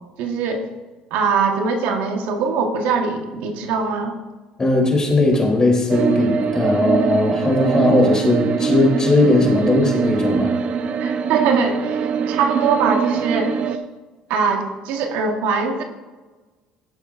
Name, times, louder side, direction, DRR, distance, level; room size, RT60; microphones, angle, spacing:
voice 1, 0.2-0.7 1.1-4.1 11.0-13.5 14.3-15.8, right 5 dB, 80° right, 4 dB, 1.4 m, -22 dB
voice 2, 4.6-10.5, left 2 dB, 25° left, 0 dB, 3.4 m, -18 dB
sound 1, 5.9-13.8, right 6 dB, 55° right, 0.7 m, -22 dB
16.5 x 7.2 x 2.6 m, 1.2 s
supercardioid pair, 85°, 3 cm